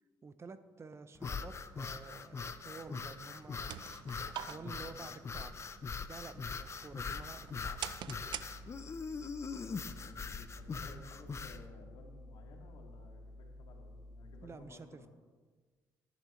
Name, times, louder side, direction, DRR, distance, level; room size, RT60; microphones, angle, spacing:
voice 1, 0.2-4.1 4.5-5.5 6.1-7.8 14.4-15.0, right 4 dB, 35° right, 12 dB, 0.7 m, -50 dB
sound 1, 1.1-11.6, left 5 dB, 35° left, 0.7 m, -42 dB
sound 2, 3.4-9.1, right 11 dB, 75° right, 0.5 m, -47 dB
voice 2, 4.5-5.4 9.6-15.1, left 3 dB, 75° left, 1 dB, 2.3 m, -56 dB
sound 3, 8.0-14.5, left 1 dB, 55° right, 1.4 m, -52 dB
14.0 x 10.5 x 3.2 m, 1.4 s
cardioid pair, 80°, 8 cm